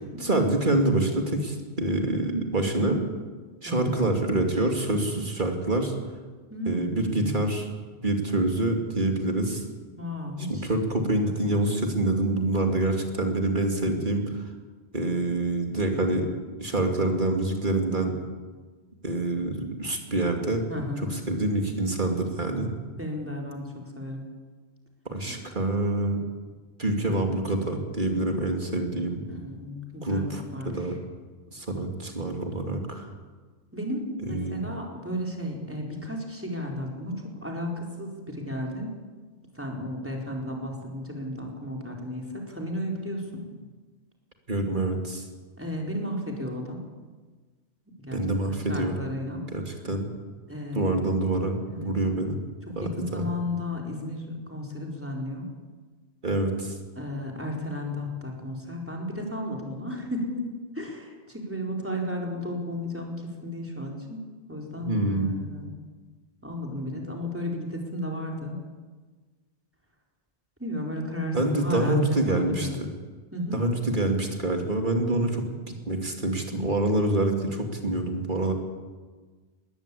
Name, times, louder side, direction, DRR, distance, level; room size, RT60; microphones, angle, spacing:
voice 1, 0.2-3.0 3.6-5.9 6.7-7.7 8.0-9.6 10.5-14.4 14.9-16.3 16.6-18.1 19.0-20.6 21.1-22.7 25.0-26.2 26.8-29.2 30.0-30.9 31.5-33.1 34.3-34.6 44.5-45.3 48.1-48.9 49.5-50.1 50.7-52.4 52.7-53.3 56.2-56.8 64.8-65.4 71.3-72.9 73.5-78.5, right 2 dB, 45° right, 3 dB, 2.9 m, -26 dB
voice 2, 6.5-7.4 10.0-10.7 20.7-21.2 22.7-24.3 29.3-30.9 33.7-39.0 39.5-43.5 45.6-46.9 48.0-49.4 50.5-51.0 51.7-51.9 52.7-55.5 57.0-60.5 60.7-64.2 64.5-65.7 66.4-68.6 70.6-72.8 73.3-73.6, left 1 dB, 10° right, 0 dB, 4.3 m, -34 dB
20.5 x 18.5 x 8.5 m, 1.4 s
omnidirectional pair, 1.2 m